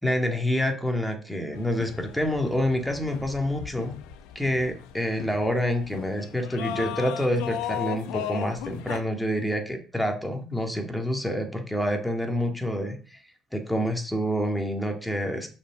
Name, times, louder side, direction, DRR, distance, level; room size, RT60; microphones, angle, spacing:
voice 1, 0.0-4.0 4.4-13.2 13.5-15.5, equal, 5° left, 4 dB, 2.2 m, -27 dB
sound 1, 1.5-9.0, left 11 dB, 90° left, 0.8 m, -37 dB
6.9 x 5.6 x 6.6 m, 0.37 s
cardioid pair, 90°, 0 cm